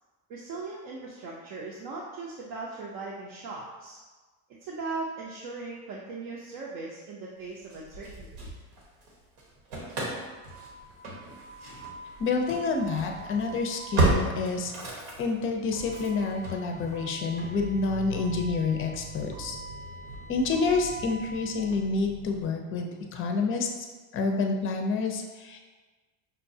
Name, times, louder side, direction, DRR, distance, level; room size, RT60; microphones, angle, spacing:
voice 1, 0.3-4.0 4.6-8.5, right 3 dB, 55° right, -5 dB, 0.7 m, -38 dB
Engine starting / Slam, 7.7-9.1 9.4-22.4, right 2 dB, 80° right, 1.3 m, -34 dB
voice 2, 12.2-14.7 15.2-19.6 20.3-23.7 24.1-25.6, left 4 dB, 30° left, 3 dB, 0.5 m, -28 dB
5.6 x 2.3 x 2.7 m, 1.3 s
supercardioid pair, 115°, 43 cm